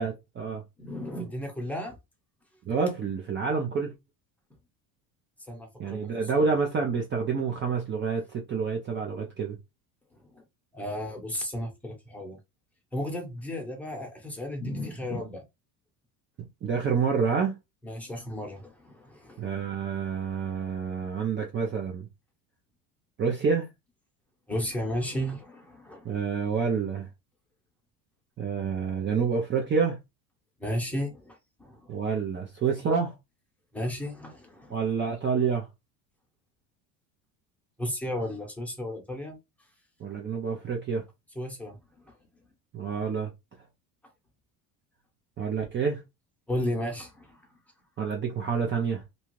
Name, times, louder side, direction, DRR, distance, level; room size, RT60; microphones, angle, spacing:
voice 1, 0.0-0.6 2.7-3.9 5.8-9.6 16.6-17.6 19.4-22.1 23.2-23.7 26.0-27.1 28.4-30.0 31.9-33.2 34.7-35.7 40.0-41.1 42.7-43.3 45.4-46.0 48.0-49.0, right 5 dB, 30° right, 0.6 m, -28 dB
voice 2, 0.8-1.9 5.5-6.5 10.7-12.4 12.9-15.4 17.8-19.4 24.5-26.1 30.6-31.9 33.7-34.8 37.8-39.4 41.4-41.8 42.1-42.2 46.5-47.4, equal, 5° left, 1.0 m, -34 dB
2.7 x 2.3 x 3.1 m
supercardioid pair, 105°, 41 cm